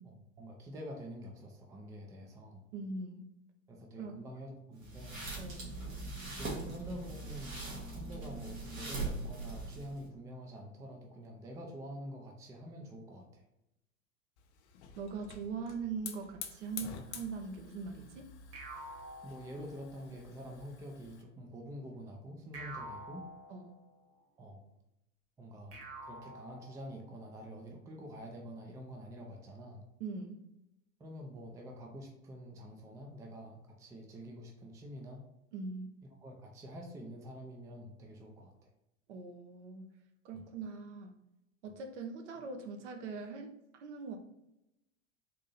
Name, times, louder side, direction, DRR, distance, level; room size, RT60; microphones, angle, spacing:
voice 1, 0.0-2.6 3.7-5.2 6.3-7.6 7.9-13.4 19.2-23.3 24.4-24.6 25.4-29.8 31.0-35.2 36.2-38.7 40.3-40.5, equal, 10° right, 1 dB, 0.4 m, -47 dB
voice 2, 2.7-3.2 4.0-4.2 5.4-5.7 15.0-18.3 23.5-23.7 30.0-30.4 35.5-35.9 39.1-39.9 40.2-41.1 41.6-43.5 43.8-44.2, right 4 dB, 60° right, 5 dB, 0.7 m, -41 dB
sound 1, 4.8-10.0, right 3 dB, 75° right, 1.4 m, -41 dB
Hiss / Fire, 14.4-21.2, left 7 dB, 55° left, 0.6 m, -49 dB
sound 2, 18.5-20.2 22.5-24.1 25.7-27.2, right 1 dB, 35° right, 1.3 m, -48 dB
3.9 x 2.7 x 4.0 m, 0.88 s
figure-of-eight pair, 80°, 40 cm